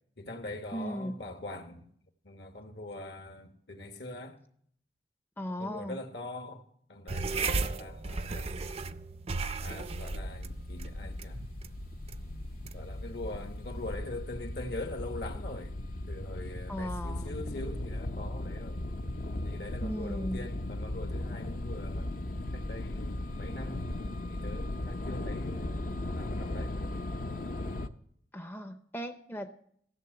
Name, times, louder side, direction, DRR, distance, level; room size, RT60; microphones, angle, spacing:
voice 1, 0.2-1.8 2.2-4.4 5.6-8.5 9.6-11.4 12.7-15.7 16.1-18.8 19.4-23.9 24.3-26.8, left 2 dB, 65° left, 1.4 m, -43 dB
voice 2, 0.7-1.1 5.4-6.0 16.7-17.4 19.8-20.4 28.3-29.5, equal, 10° left, 0.6 m, -37 dB
sound 1, 7.1-14.0, right 3 dB, 35° right, 0.5 m, -36 dB
sound 2, 9.9-27.9, left 1 dB, 50° left, 0.6 m, -37 dB
14.5 x 6.6 x 7.9 m
head